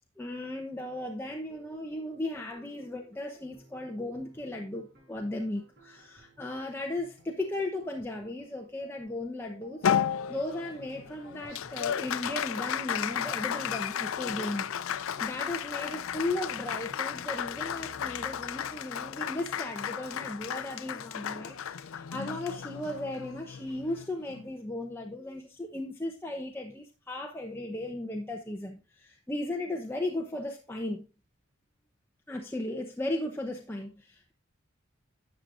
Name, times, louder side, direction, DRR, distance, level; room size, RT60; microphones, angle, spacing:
voice 1, 0.2-9.9 10.3-31.0 32.3-34.3, left 1 dB, 10° left, 0.8 m, -36 dB
sound 1, 1.2-18.2, right 2 dB, 55° right, 5.2 m, -57 dB
Applause, 9.8-24.5, left 8 dB, 80° left, 0.5 m, -34 dB
12.0 x 7.5 x 2.5 m
head